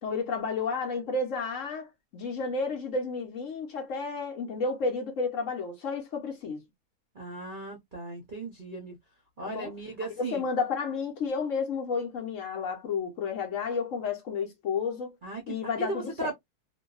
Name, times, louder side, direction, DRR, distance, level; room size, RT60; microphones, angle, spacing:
voice 1, 0.0-6.6 9.4-9.7 10.2-15.1 15.5-16.3, left 4 dB, 60° left, 1.0 m, -31 dB
voice 2, 7.1-9.0 9.4-10.4 15.2-16.3, right 2 dB, 50° right, 0.6 m, -37 dB
2.6 x 2.3 x 2.3 m
omnidirectional pair, 1.7 m